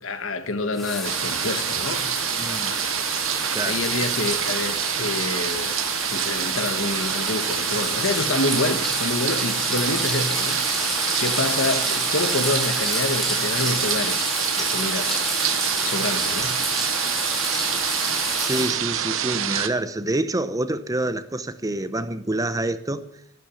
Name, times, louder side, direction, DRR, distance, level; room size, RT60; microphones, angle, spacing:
voice 1, 0.0-2.1 3.6-5.9 6.1-15.1 15.8-16.5, left 2 dB, 80° left, 1.4 m, -27 dB
sound 1, 0.7-18.7, equal, ahead, 3.2 m, -29 dB
sound 2, 1.0-19.7, right 9 dB, 80° right, 1.1 m, -27 dB
voice 2, 2.4-2.8 3.5-3.8 18.4-23.0, right 1 dB, 20° right, 0.7 m, -27 dB
12.5 x 12.0 x 7.0 m
head